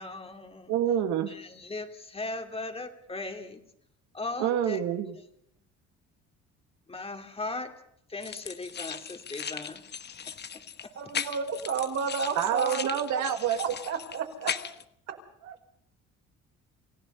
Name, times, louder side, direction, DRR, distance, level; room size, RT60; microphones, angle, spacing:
voice 1, 0.0-0.7 1.3-3.6 4.1-4.8 6.9-7.7 8.1-9.8 10.8-10.9, left 2 dB, 20° left, 5 dB, 2.5 m, -38 dB
voice 2, 0.7-1.3 4.4-5.2 12.3-13.7 15.4-15.5, right 10 dB, 85° right, 7 dB, 1.8 m, -27 dB
sound 1, 8.2-14.8, left 7 dB, 35° left, 1.2 m, -38 dB
voice 3, 10.9-12.9 13.6-14.5, right 5 dB, 60° right, 5 dB, 4.7 m, -31 dB
29.0 x 16.5 x 5.6 m, 0.72 s
cardioid pair, 125°, 30 cm